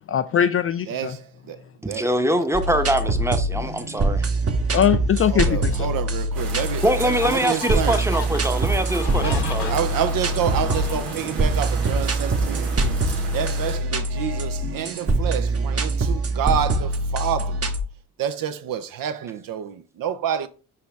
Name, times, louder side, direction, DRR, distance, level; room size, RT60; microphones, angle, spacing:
voice 1, 0.1-1.2 4.7-5.9, left 9 dB, 35° left, 0.4 m, -21 dB
voice 2, 0.9-1.6 1.8-2.1 5.3-8.0 9.2-9.4 9.7-17.7 18.2-20.5, right 9 dB, 50° right, 0.7 m, -28 dB
voice 3, 1.8-4.3 6.8-9.7, right 1 dB, 5° right, 0.9 m, -23 dB
sound 1, 2.5-17.8, right 2 dB, 30° right, 1.1 m, -24 dB
sound 2, 5.9-6.0 6.6-11.5, left 9 dB, 65° left, 1.1 m, -37 dB
sound 3, 6.3-13.8, right 4 dB, 80° right, 1.3 m, -34 dB
5.6 x 5.0 x 3.4 m
figure-of-eight pair, 40°, 45 cm